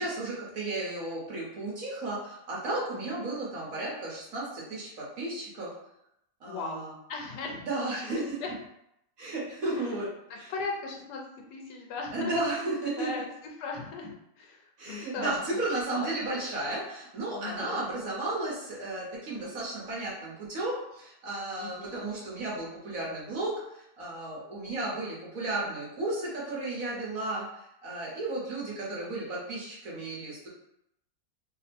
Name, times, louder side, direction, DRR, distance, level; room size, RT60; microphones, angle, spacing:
voice 1, 0.0-5.7 6.4-6.9 7.4-8.4 9.2-10.1 10.4-10.5 12.1-13.1 14.8-30.5, right 2 dB, 60° right, -5 dB, 1.5 m, -34 dB
voice 2, 6.5-8.5 9.7-9.9 10.3-11.2 11.5-12.3 13.0-15.3 15.9-16.1 17.3-17.8 21.6-22.0, left 4 dB, 80° left, 1 dB, 1.3 m, -38 dB
3.4 x 2.1 x 4.2 m, 0.79 s
omnidirectional pair, 1.8 m